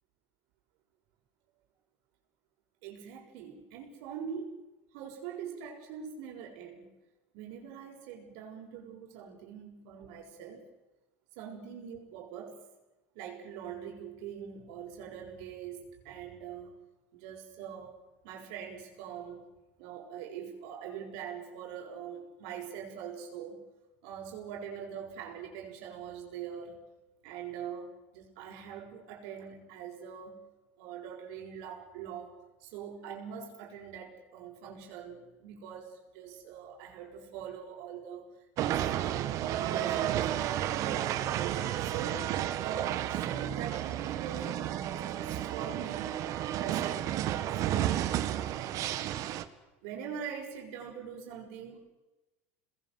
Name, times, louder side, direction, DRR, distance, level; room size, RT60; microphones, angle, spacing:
voice 1, 2.8-4.6 4.9-7.0 7.3-10.7 11.3-12.6 13.1-16.7 17.1-18.0 18.2-19.4 19.8-23.7 24.0-26.8 27.2-30.4 30.8-32.3 32.6-38.3 38.6-42.3 42.6-46.1 46.5-47.1 47.4-48.9 49.8-51.9, right 7 dB, 75° right, 3 dB, 6.4 m, -43 dB
sound 1, 38.6-49.4, right 12 dB, 55° right, 1.8 m, -32 dB
28.5 x 21.0 x 7.8 m, 1.1 s
supercardioid pair, 120°, 7 cm